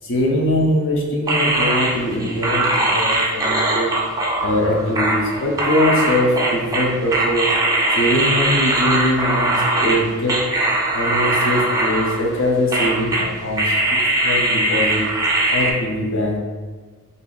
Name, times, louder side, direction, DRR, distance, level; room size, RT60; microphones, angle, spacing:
voice 1, 0.0-3.9 4.4-7.5 7.9-10.4 10.9-15.1 15.5-16.4, left 1 dB, 55° left, -1 dB, 0.6 m, -22 dB
sound 1, 1.3-10.0 10.3-12.4 12.7-13.3 13.6-15.7, right 1 dB, 15° right, 0.3 m, -20 dB
2.7 x 2.5 x 3.8 m, 1.5 s
head